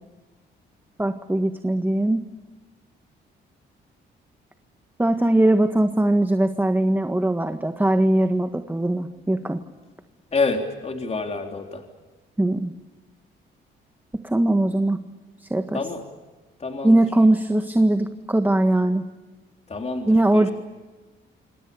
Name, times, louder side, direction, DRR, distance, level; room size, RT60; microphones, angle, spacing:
voice 1, 1.0-2.2 5.0-9.6 12.4-12.7 14.1-15.0 15.4-15.8 16.8-19.0 20.1-20.5, right 1 dB, 10° right, 7 dB, 1.6 m, -20 dB
voice 2, 10.3-11.8 15.7-16.0 16.6-17.0 19.7-20.5, left 3 dB, 30° left, 3 dB, 3.6 m, -27 dB
27.5 x 25.5 x 7.0 m, 1.3 s
cardioid pair, 90°, 20 cm